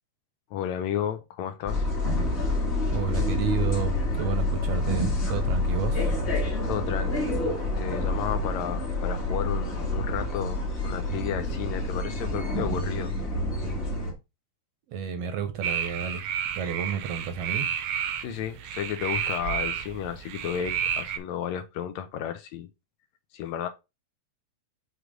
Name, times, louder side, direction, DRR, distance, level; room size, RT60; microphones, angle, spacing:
voice 1, 0.5-1.9 6.6-7.4 7.8-13.1 18.1-22.7 23.3-23.7, left 9 dB, 75° left, 1.9 m, -33 dB
sound 1, 1.7-14.1, left 2 dB, 30° left, 1.4 m, -27 dB
voice 2, 2.9-6.2 14.9-16.2 16.6-17.7, right 7 dB, 70° right, 1.6 m, -31 dB
sound 2, 15.6-21.2, right 8 dB, 85° right, 2.1 m, -31 dB
6.4 x 3.2 x 4.9 m
omnidirectional pair, 3.4 m